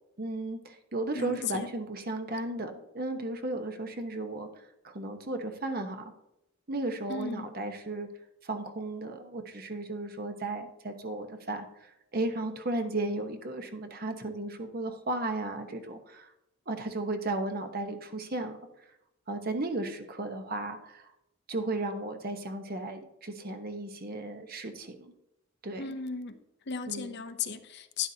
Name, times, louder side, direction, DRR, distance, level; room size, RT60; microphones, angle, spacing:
voice 1, 0.2-4.5 4.8-6.1 6.7-8.1 8.4-16.3 16.7-18.6 19.3-21.1 21.5-25.1 25.6-25.8 26.9-27.2, right 2 dB, 50° right, 6 dB, 1.0 m, -35 dB
voice 2, 1.1-1.7 7.1-7.5 25.8-26.4 26.7-28.1, left 6 dB, 55° left, 9 dB, 0.7 m, -35 dB
11.5 x 10.5 x 2.8 m, 0.86 s
head